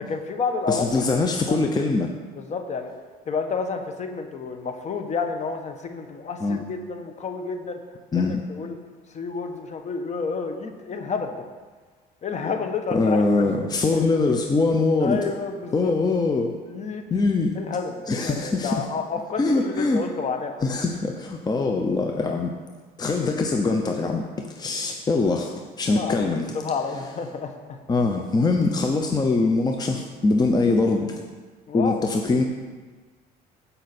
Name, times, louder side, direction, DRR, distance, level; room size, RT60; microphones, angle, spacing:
voice 1, 0.0-1.1 1.5-1.6 2.4-2.9 3.3-7.8 8.1-8.8 9.1-11.4 12.2-13.3 15.0-16.0 16.6-17.0 17.5-20.8 22.2-22.3 25.9-27.8 31.7-32.1, left 5 dB, 45° left, 6 dB, 1.2 m, -30 dB
voice 2, 0.7-2.1 6.4-6.6 8.1-8.4 12.9-15.2 15.7-16.6 17.1-17.6 18.1-18.8 19.4-20.0 20.6-22.5 23.0-26.6 27.9-31.2 31.7-32.4, left 3 dB, 25° left, 3 dB, 0.8 m, -23 dB
15.0 x 5.6 x 4.3 m, 1.4 s
cardioid pair, 110°, 17 cm